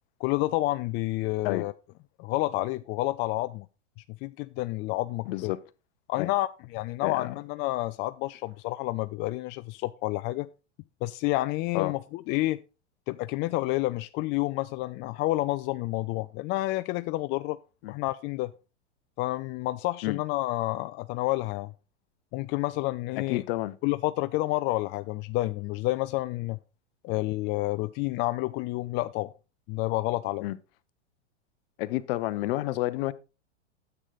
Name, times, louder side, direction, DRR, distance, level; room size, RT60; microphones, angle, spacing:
voice 1, 0.2-1.7 2.2-3.7 4.1-5.5 6.1-10.5 11.0-12.6 13.1-17.6 17.9-18.5 19.2-21.7 22.3-23.4 23.8-26.6 27.0-29.3 29.7-30.5, left 18 dB, 30° left, 0.4 m, -29 dB
voice 2, 5.3-5.6 6.2-6.3 7.0-7.3 11.7-11.9 17.8-17.9 20.0-20.2 23.3-23.8 30.4-30.6 31.8-33.1, left 17 dB, 50° left, 0.8 m, -29 dB
9.8 x 8.1 x 3.9 m
hypercardioid pair, 105°, 35 cm